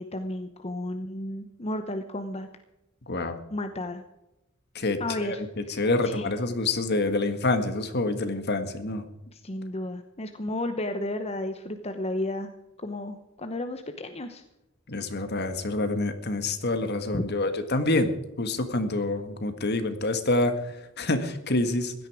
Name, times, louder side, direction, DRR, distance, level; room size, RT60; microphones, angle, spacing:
voice 1, 0.0-2.5 3.5-4.0 5.0-6.3 9.3-12.5 12.8-14.4 17.1-17.2, left 1 dB, 30° left, 7 dB, 0.9 m, -33 dB
voice 2, 3.1-3.4 4.7-9.0 14.9-21.9, left 2 dB, 50° left, 8 dB, 1.7 m, -27 dB
16.5 x 12.5 x 4.9 m, 0.94 s
head